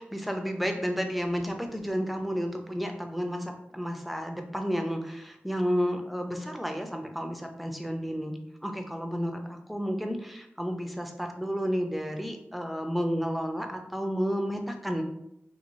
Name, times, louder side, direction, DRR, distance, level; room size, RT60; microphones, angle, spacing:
voice 1, 0.1-15.0, equal, ahead, 4 dB, 0.5 m, -31 dB
3.0 x 2.8 x 2.6 m, 0.78 s
wide cardioid pair, 55°, 4 cm